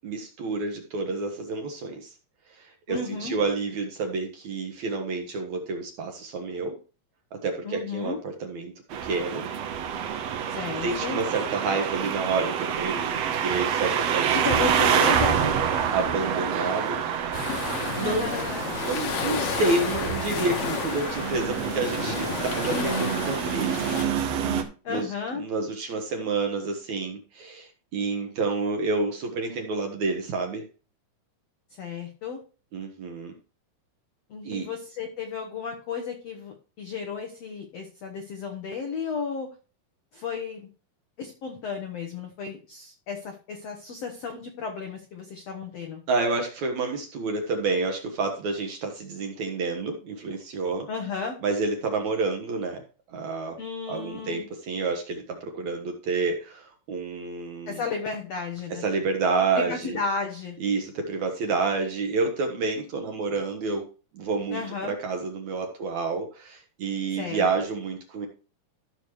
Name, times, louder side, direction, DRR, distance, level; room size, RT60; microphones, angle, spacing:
voice 1, 0.0-2.2 2.5-6.8 7.4-8.7 9.0-9.5 10.8-15.0 15.9-17.2 17.9-18.3 18.8-23.9 24.9-30.6 32.7-33.3 34.4-34.7 46.1-50.9 51.4-52.8 53.1-53.6 53.9-57.8 58.7-60.0 60.6-63.8 64.1-68.3, right 3 dB, 60° right, 4 dB, 2.1 m, -29 dB
voice 2, 2.9-3.4 7.6-8.2 10.5-11.2 14.3-15.6 17.9-18.8 24.8-25.4 31.7-32.4 34.3-39.5 40.1-40.7 41.2-46.0 50.9-51.4 53.6-54.4 57.7-58.9 59.6-60.6 64.5-65.0 67.1-67.7, left 5 dB, 80° left, 3 dB, 1.4 m, -33 dB
sound 1, 8.9-24.6, right 8 dB, 90° right, 1.4 m, -27 dB
sound 2, 17.3-24.1, left 6 dB, 60° left, 1.9 m, -32 dB
13.5 x 6.6 x 3.1 m, 0.35 s
omnidirectional pair, 4.6 m